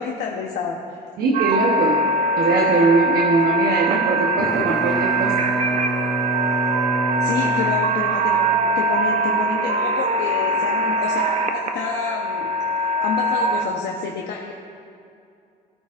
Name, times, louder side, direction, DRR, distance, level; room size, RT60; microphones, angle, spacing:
voice 1, 0.0-1.0 7.2-8.5 8.7-12.5 12.8-14.5, left 6 dB, 75° left, 0 dB, 1.0 m, -29 dB
voice 2, 1.2-2.0 2.4-5.4, right 3 dB, 70° right, -1 dB, 1.0 m, -21 dB
sound 1, 1.3-13.7, right 2 dB, 40° right, 0.8 m, -22 dB
Bowed string instrument, 4.3-8.6, equal, ahead, 0.9 m, -27 dB
17.5 x 8.9 x 2.5 m, 2.5 s
cardioid pair, 110°, 17 cm